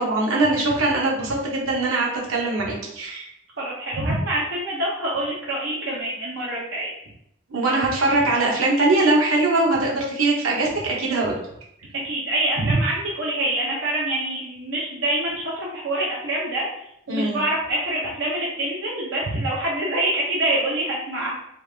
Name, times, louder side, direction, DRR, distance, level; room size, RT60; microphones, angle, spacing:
voice 1, 0.0-3.3 3.9-4.0 7.5-11.4 12.6-12.7 17.1-17.4, right 2 dB, 85° right, -2 dB, 0.9 m, -22 dB
voice 2, 3.6-6.9 12.0-16.6 17.1-21.3, right 1 dB, 65° right, -5 dB, 0.7 m, -26 dB
3.3 x 2.4 x 3.3 m, 0.76 s
head